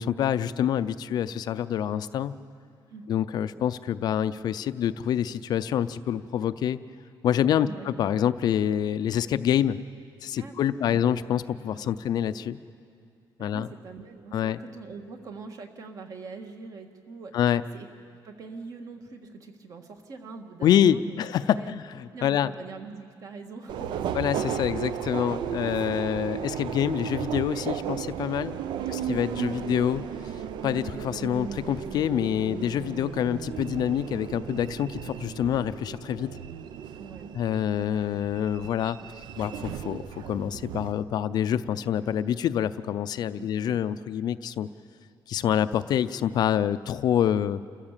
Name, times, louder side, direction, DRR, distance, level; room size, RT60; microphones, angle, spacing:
voice 1, 0.0-2.3 3.1-6.8 7.2-9.8 10.2-12.6 13.4-13.7 14.3-14.6 17.3-17.6 20.6-21.8 22.2-22.5 24.1-28.6 28.9-30.0 30.6-36.3 37.4-39.0 39.4-44.7 45.3-47.6, left 10 dB, 55° left, 13 dB, 0.5 m, -26 dB
voice 2, 7.6-7.9 10.4-11.1 11.7-11.9 13.4-17.9 18.2-21.8 22.1-24.1 28.5-28.9 29.3-29.6 37.0-37.3 43.4-43.8, right 4 dB, 45° right, 5 dB, 1.6 m, -43 dB
Subway metro underground, 23.7-40.9, right 9 dB, 70° right, 0.7 m, -35 dB
28.5 x 15.0 x 7.3 m, 2.3 s
cardioid pair, 175°, 8 cm